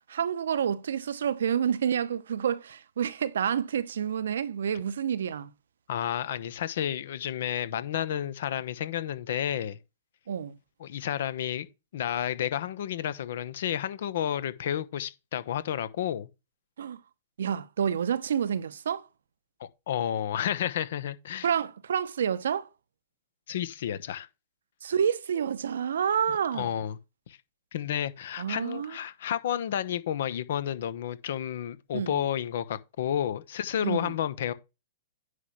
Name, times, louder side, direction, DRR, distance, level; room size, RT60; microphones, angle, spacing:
voice 1, 0.0-5.5 10.3-10.6 16.8-17.0 17.4-19.1 21.4-22.7 24.8-26.7 28.4-29.0 31.9-32.2 33.8-34.2, right 8 dB, 70° right, 0.7 m, -29 dB
voice 2, 5.9-9.8 10.8-11.7 11.9-16.3 19.6-21.5 23.5-24.3 26.5-27.0 27.3-27.4 27.7-34.5, left 10 dB, 65° left, 0.9 m, -31 dB
9.6 x 3.3 x 5.8 m
hypercardioid pair, 110°, 0 cm